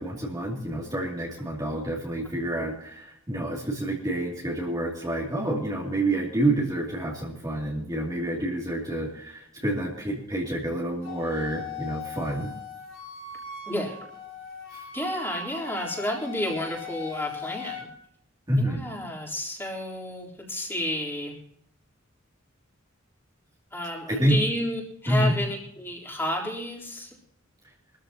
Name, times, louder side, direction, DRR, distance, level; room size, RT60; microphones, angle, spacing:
voice 1, 0.0-12.5 14.7-14.9 18.5-18.8 24.1-24.4 25.1-25.3, right 1 dB, 20° right, -3 dB, 2.7 m, -28 dB
Wind instrument woodwind instrument, 11.0-17.9, left 5 dB, 65° left, 4.4 m, -39 dB
voice 2, 13.7-14.0 14.9-17.9 18.7-21.4 23.7-27.1, left 1 dB, 10° left, -3 dB, 3.8 m, -31 dB
23.5 x 14.0 x 2.9 m, 0.71 s
head